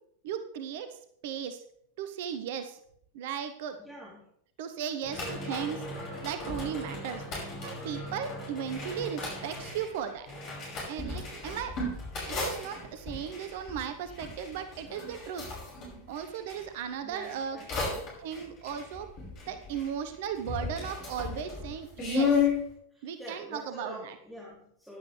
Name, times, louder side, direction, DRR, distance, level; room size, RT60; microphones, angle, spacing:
voice 1, 0.2-1.6 2.0-2.8 3.1-3.8 4.6-5.8 6.2-7.2 7.6-10.3 10.9-11.9 12.2-15.5 16.1-17.6 18.2-19.1 19.5-22.4 23.0-24.1, right 8 dB, 50° right, 9 dB, 0.9 m, -36 dB
voice 2, 3.8-4.2 8.1-8.3 11.2-11.5 17.0-17.7 17.9-18.1 22.9-25.0, equal, ahead, -6 dB, 3.0 m, -46 dB
sound 1, 5.0-16.6 17.2-20.1 20.3-22.6, left 4 dB, 35° left, 5.6 m, -35 dB
14.5 x 10.5 x 3.2 m, 0.66 s
figure-of-eight pair, 90°, 0 cm